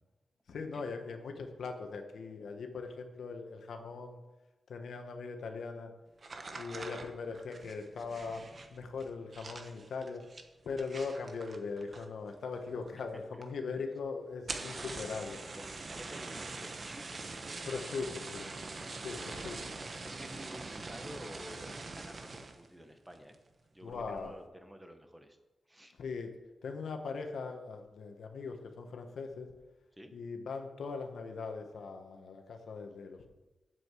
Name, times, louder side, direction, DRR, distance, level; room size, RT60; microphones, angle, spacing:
voice 1, 0.5-4.2 4.7-5.9 6.5-8.4 8.7-10.2 10.6-15.4 17.6-18.1 18.3-18.5 19.0-19.5 23.8-24.3 26.0-26.3 26.6-29.5 30.1-33.3, left 4 dB, 85° left, 5 dB, 1.4 m, -40 dB
sound 1, 6.2-12.3 12.6-13.1 13.4-13.5 13.8-13.9 14.3-22.7 23.1-23.5 23.9-24.3, right 3 dB, 40° right, 1.2 m, -44 dB
voice 2, 13.1-13.4 14.5-14.8 15.5-18.2 18.7-19.3 20.0-23.4 23.7-25.4 25.7-25.9 29.9-30.1, equal, 10° right, 6 dB, 1.2 m, -51 dB
7.9 x 7.7 x 8.3 m, 1.1 s
wide cardioid pair, 125°, 0 cm